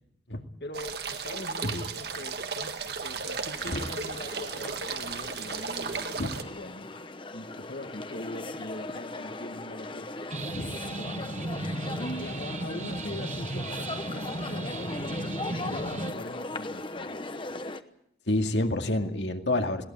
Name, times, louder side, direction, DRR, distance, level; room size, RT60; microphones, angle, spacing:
voice 1, 0.6-6.9 7.3-10.3 10.6-11.4 11.7-17.1, left 1 dB, 65° left, 4 dB, 1.7 m, -42 dB
sound 1, 0.7-6.4, right 5 dB, 60° right, 1.7 m, -35 dB
sound 2, 3.5-17.8, left 2 dB, 30° left, 1.0 m, -39 dB
sound 3, 10.3-16.1, right 2 dB, 40° right, 1.2 m, -35 dB
voice 2, 18.3-19.8, left 1 dB, 85° left, 5 dB, 2.2 m, -28 dB
21.0 x 18.5 x 8.7 m, 0.74 s
head